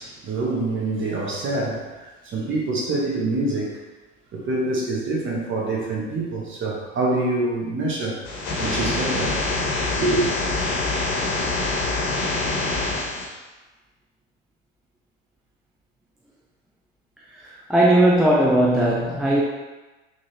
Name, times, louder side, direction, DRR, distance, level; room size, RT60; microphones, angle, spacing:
voice 1, 0.0-3.8 4.3-8.2 8.6-9.3 10.0-10.2, right 2 dB, 30° right, -3 dB, 1.2 m, -25 dB
sound 1, 8.2-13.2, left 2 dB, 55° left, 1.2 m, -25 dB
voice 2, 17.7-19.4, right 1 dB, ahead, -5 dB, 0.3 m, -17 dB
3.9 x 2.6 x 3.3 m, 1.2 s
figure-of-eight pair, 75°, 38 cm